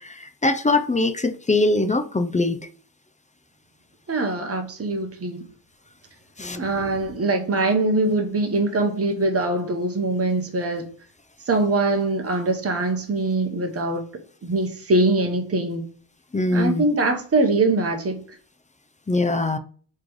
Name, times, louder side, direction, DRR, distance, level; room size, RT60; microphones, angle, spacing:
voice 1, 0.0-2.6 6.4-6.6 16.3-16.8 19.1-19.6, left 2 dB, 15° left, 0.3 m, -22 dB
voice 2, 4.1-5.4 6.6-10.9 11.5-14.1 14.4-15.8 16.5-18.2, right 2 dB, 30° right, 0.9 m, -23 dB
4.1 x 3.2 x 3.0 m
wide cardioid pair, 95°, 49 cm